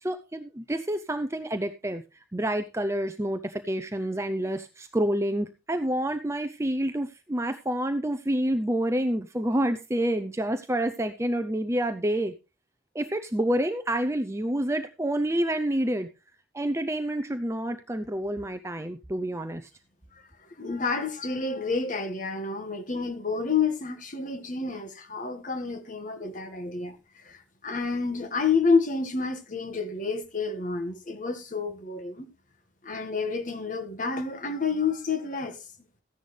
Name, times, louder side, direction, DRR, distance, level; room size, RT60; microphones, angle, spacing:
voice 1, 0.0-2.0 2.3-12.3 12.9-16.1 16.5-19.7, right 1 dB, 15° right, 0.6 m, -28 dB
voice 2, 20.6-32.3 32.8-35.6, left 4 dB, 45° left, 1.7 m, -29 dB
14.5 x 10.5 x 3.3 m
head